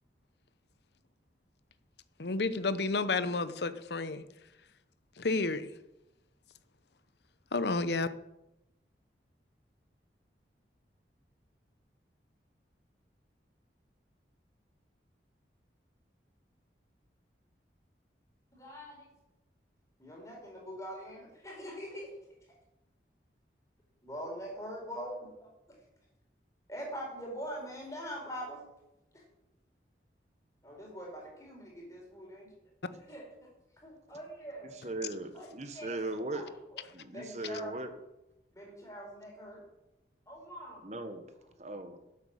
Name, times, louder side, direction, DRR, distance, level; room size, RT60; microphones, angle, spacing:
voice 1, 2.2-4.2 5.2-5.7 7.5-8.1, left 3 dB, 70° left, 13 dB, 0.8 m, -31 dB
voice 2, 18.5-19.1 20.0-22.1 24.0-25.5 26.7-28.6 29.1-29.2 30.6-32.5 33.1-33.5 33.8-34.7 35.3-35.5 35.7-36.5 37.1-37.8 38.5-39.6 40.3-40.9, equal, 20° left, -1 dB, 4.7 m, -43 dB
voice 3, 34.6-36.5 36.9-37.9 40.8-41.3 41.6-42.0, right 2 dB, 40° right, 8 dB, 1.3 m, -38 dB
12.0 x 8.0 x 7.6 m, 0.92 s
head